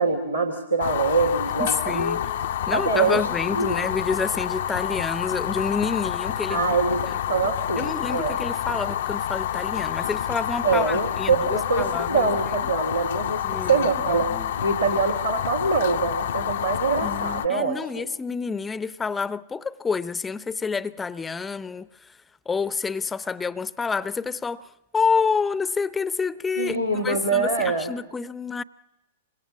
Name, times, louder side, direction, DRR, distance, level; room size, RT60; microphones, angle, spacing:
voice 1, 0.0-2.2 2.7-3.8 6.5-7.0 7.3-8.4 10.6-14.3 14.6-17.8 26.6-27.9, right 4 dB, 90° right, 3.0 m, -24 dB
Fire, 0.8-17.5, left 10 dB, 55° left, 0.8 m, -28 dB
voice 2, 1.6-2.2 2.7-6.7 7.0-7.2 7.8-12.3 12.6-12.7 13.4-14.5 17.0-22.2 22.5-28.6, left 5 dB, 10° left, 0.8 m, -28 dB
27.5 x 25.5 x 6.3 m
figure-of-eight pair, 100°, 0 cm